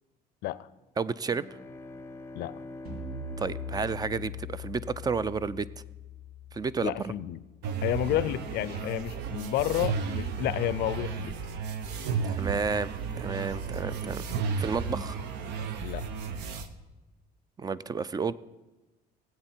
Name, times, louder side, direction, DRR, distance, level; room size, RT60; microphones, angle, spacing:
voice 1, 1.0-1.4 3.4-5.7 6.5-7.1 12.2-12.9 13.2-14.2 14.6-15.2 17.6-18.3, right 5 dB, 25° right, 17 dB, 0.3 m, -31 dB
sound 1, 1.2-5.2, left 2 dB, 15° left, 0.6 m, -45 dB
sound 2, 2.8-8.2, left 4 dB, 65° right, 3.1 m, -42 dB
voice 2, 6.8-7.4 7.8-11.4 15.8-16.1, left 14 dB, 75° left, 18 dB, 0.5 m, -30 dB
sound 3, 7.6-16.7, right 5 dB, 85° right, 0.8 m, -33 dB
18.0 x 7.9 x 4.4 m, 1.1 s
cardioid pair, 110°, 17 cm